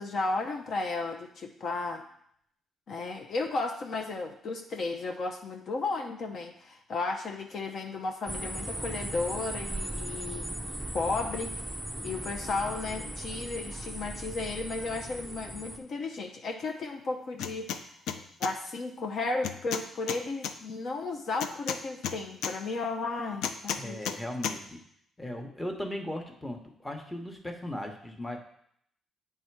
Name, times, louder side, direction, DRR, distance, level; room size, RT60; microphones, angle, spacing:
voice 1, 0.0-2.0 2.9-10.5 10.9-11.6 12.0-17.9 18.4-24.2, left 3 dB, 60° left, 3 dB, 0.7 m, -34 dB
sound 1, 8.3-15.8, right 1 dB, 5° right, 0.5 m, -38 dB
sound 2, 17.4-17.8 18.1-18.5 19.4-20.5 21.4-22.5 23.4-24.2 24.4-24.6, left 8 dB, 85° left, 0.4 m, -33 dB
voice 2, 23.8-24.8 25.2-28.4, left 1 dB, 10° left, 3 dB, 1.0 m, -37 dB
8.1 x 3.3 x 4.7 m, 0.69 s
cardioid pair, 90°, 0 cm